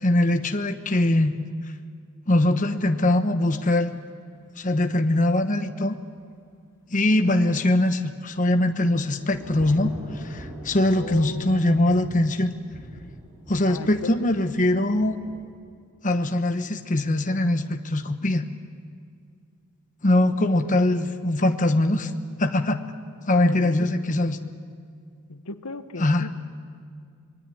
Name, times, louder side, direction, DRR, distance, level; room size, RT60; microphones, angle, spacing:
voice 1, 0.0-1.4 2.3-3.9 4.6-6.0 6.9-12.5 13.5-15.2 16.0-18.5 20.0-22.1 22.4-22.8 23.3-24.4 26.0-26.3, left 1 dB, 35° left, 7 dB, 1.1 m, -22 dB
Thunder / Rain, 8.0-15.4, equal, 15° right, 6.0 m, -44 dB
voice 2, 11.0-11.6 13.7-14.4 23.3-23.9 25.3-26.3, left 2 dB, 80° left, 10 dB, 1.2 m, -36 dB
26.5 x 21.5 x 10.0 m, 2.2 s
head